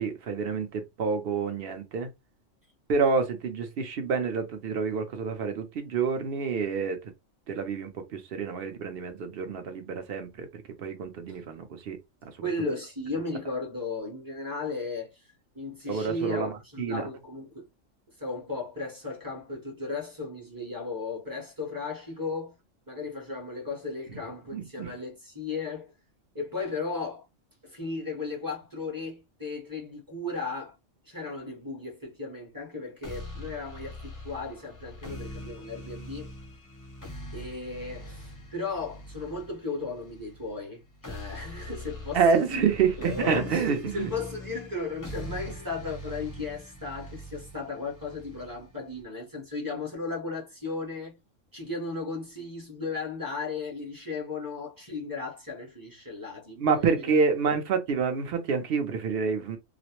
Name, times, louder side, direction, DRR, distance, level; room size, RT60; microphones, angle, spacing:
voice 1, 0.0-2.1 2.9-7.1 7.5-12.5 15.9-16.5 16.8-17.1 24.5-24.9 42.1-44.1 56.6-59.6, right 5 dB, 60° right, 0.7 m, -28 dB
voice 2, 12.4-15.3 15.5-17.6 18.2-22.6 22.9-25.9 26.3-27.3 27.6-30.7 31.0-36.3 37.3-42.6 43.0-51.2 51.5-56.9, left 3 dB, 20° right, 0.8 m, -35 dB
sound 1, 33.0-49.0, left 1 dB, 25° left, 0.5 m, -43 dB
2.4 x 2.0 x 2.8 m
omnidirectional pair, 1.3 m